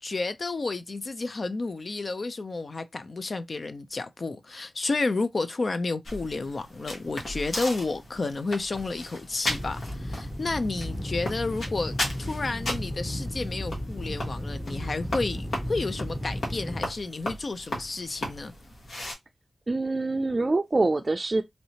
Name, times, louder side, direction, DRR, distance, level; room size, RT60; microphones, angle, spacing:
voice 1, 0.0-18.5, left 3 dB, 55° left, 0.5 m, -31 dB
sound 1, 6.0-19.1, left 1 dB, 80° left, 1.3 m, -37 dB
sound 2, 9.5-16.8, equal, 5° left, 0.7 m, -34 dB
voice 2, 19.7-21.4, right 2 dB, 40° right, 0.4 m, -25 dB
3.2 x 2.7 x 2.8 m
cardioid pair, 50°, 0 cm